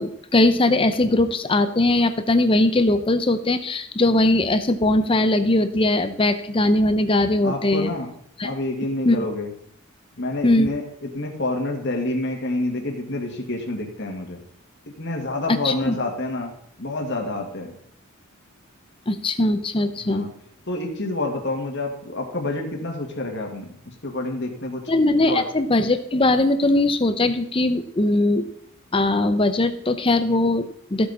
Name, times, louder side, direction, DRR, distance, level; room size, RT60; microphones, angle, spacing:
voice 1, 0.0-7.9 8.4-8.5 9.1-9.3 10.4-10.7 15.6-16.0 19.1-20.2 24.9-28.4 28.9-31.1, left 2 dB, 25° left, 10 dB, 0.6 m, -20 dB
voice 2, 7.4-8.1 8.4-9.5 10.2-14.4 15.0-16.5 16.8-17.7 20.0-20.3 20.7-24.8 25.3-25.4, left 2 dB, 55° left, 2 dB, 2.0 m, -28 dB
14.5 x 8.4 x 4.2 m, 0.67 s
head